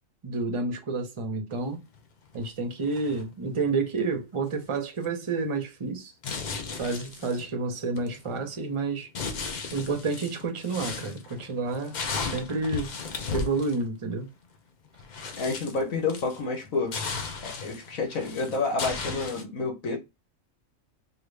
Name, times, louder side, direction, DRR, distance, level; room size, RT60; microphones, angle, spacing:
voice 1, 0.2-1.8 2.3-6.1 6.8-9.1 9.7-12.0 12.2-12.9 13.3-14.3, right 3 dB, 30° right, 0.6 m, -29 dB
sound 1, 1.9-2.0 2.3-2.5 2.8-3.6 4.5-4.7 5.0-5.4 6.2-7.6 8.0-8.7 9.1-13.8 14.5-14.6 14.9-16.6 16.9-19.4, left 4 dB, 55° left, 0.5 m, -36 dB
voice 2, 15.4-17.0 17.4-20.0, left 3 dB, 75° left, 1.5 m, -29 dB
3.8 x 2.4 x 3.2 m
omnidirectional pair, 1.5 m